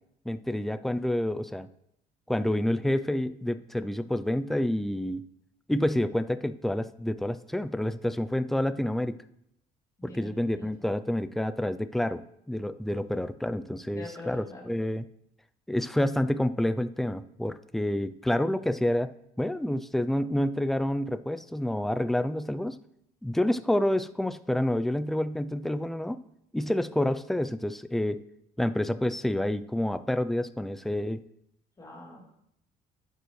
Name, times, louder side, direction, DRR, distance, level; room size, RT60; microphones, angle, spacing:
voice 1, 0.3-1.7 2.3-5.2 5.7-9.2 10.0-12.2 12.5-15.0 15.7-19.1 19.4-22.8 23.2-26.2 26.5-28.2 28.6-31.2, left 1 dB, ahead, 11 dB, 0.3 m, -28 dB
voice 2, 10.0-10.9 13.9-14.7 31.8-32.3, left 2 dB, 20° left, -3 dB, 3.3 m, -44 dB
11.0 x 7.8 x 3.2 m, 0.77 s
cardioid pair, 110°, 17 cm